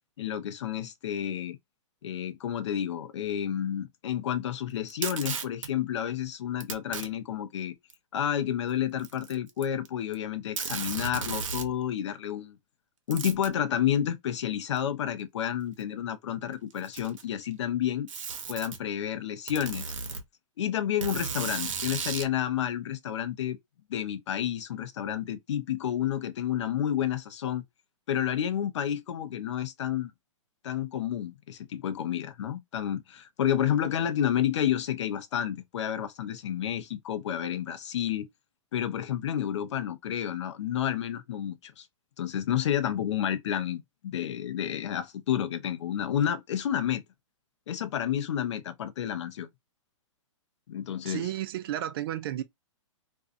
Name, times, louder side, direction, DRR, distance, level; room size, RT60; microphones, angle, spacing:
voice 1, 0.2-1.6 2.0-7.7 8.1-12.5 13.1-18.1 18.5-19.9 20.6-23.6 23.9-27.6 28.1-30.1 30.6-38.3 38.7-41.9 42.2-47.0 47.7-49.5 50.7-51.3, left 10 dB, 65° left, 0.6 m, -30 dB
Packing tape duct tape, 4.9-5.7 6.6-7.1 7.9-8.0 9.0-9.9 10.1-10.2 10.6-11.7 13.1-13.5 14.8-14.9 15.8-15.9 16.7-17.3 18.1-18.8 19.5-20.2 21.0-22.3, right 5 dB, 75° right, 0.8 m, -34 dB
voice 2, 51.0-52.4, right 12 dB, 45° right, 0.4 m, -32 dB
2.5 x 2.3 x 2.5 m
hypercardioid pair, 145°, 17 cm